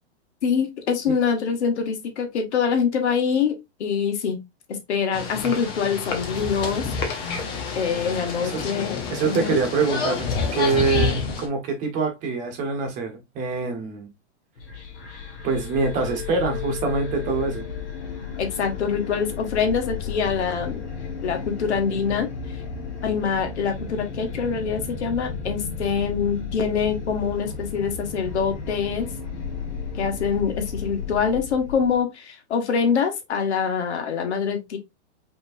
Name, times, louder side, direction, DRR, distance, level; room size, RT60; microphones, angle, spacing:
voice 1, 0.4-4.4 4.9-6.9 7.7-9.6 18.4-20.8 21.2-22.3 23.0-29.1 29.9-34.8, left 6 dB, 70° left, 1.5 m, -25 dB
sound 1, 5.1-11.5, left 5 dB, 15° left, 0.5 m, -28 dB
voice 2, 9.1-14.1 15.4-17.7, right 4 dB, 20° right, 1.2 m, -25 dB
sound 2, 14.6-32.0, left 5 dB, 55° left, 1.9 m, -33 dB
5.2 x 3.1 x 2.5 m
hypercardioid pair, 160°, 35 cm